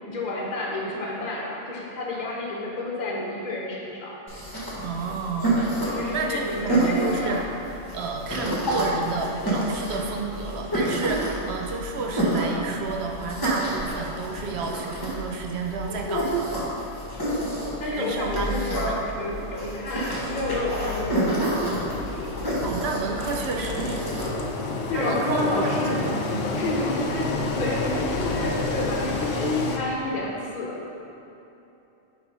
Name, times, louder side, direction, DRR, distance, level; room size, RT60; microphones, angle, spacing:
voice 1, 0.1-4.2 5.9-7.5 17.2-21.8 23.6-23.7 24.9-26.0 26.5-30.8, left 2 dB, 40° left, -3 dB, 1.0 m, -30 dB
sound 1, 4.3-24.3, right 1 dB, 20° left, 1.2 m, -29 dB
voice 2, 4.8-7.4 7.9-16.5 18.0-19.0 22.6-24.1 24.9-26.1, right 4 dB, 65° right, 1 dB, 0.8 m, -31 dB
Engine, 21.4-29.8, left 2 dB, 60° left, 0.7 m, -29 dB
6.0 x 3.4 x 5.2 m, 2.9 s
omnidirectional pair, 1.3 m